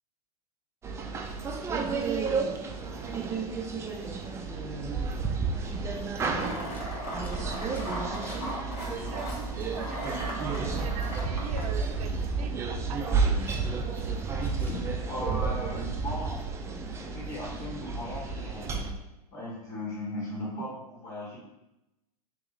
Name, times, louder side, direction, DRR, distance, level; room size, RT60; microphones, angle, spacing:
sound 1, 0.8-18.9, right 4 dB, 15° right, 0.3 m, -31 dB
Scissors, 6.1-10.2 10.4-12.0 12.3-14.9 15.2-16.1, equal, 10° left, 0.9 m, -49 dB
sound 2, 6.4-11.6, equal, 80° left, 1.5 m, -38 dB
voice 1, 9.1-13.6, right 6 dB, 70° right, 6 dB, 0.6 m, -41 dB
voice 2, 15.0-16.4 17.0-18.8 19.3-21.4, left 1 dB, 60° left, -5 dB, 1.5 m, -37 dB
3.0 x 3.0 x 3.8 m, 0.97 s
hypercardioid pair, 110°, 19 cm